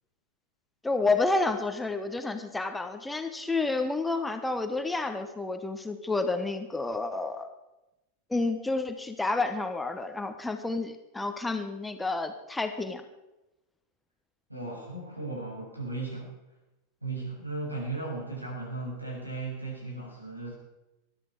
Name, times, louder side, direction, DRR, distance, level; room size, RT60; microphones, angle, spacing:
voice 1, 0.8-7.5 8.3-13.0, left 3 dB, 5° left, 7 dB, 1.2 m, -30 dB
voice 2, 14.5-16.3 17.0-20.5, right 3 dB, 85° right, -3 dB, 7.4 m, -36 dB
21.5 x 13.0 x 4.8 m, 0.97 s
figure-of-eight pair, 90°, 0 cm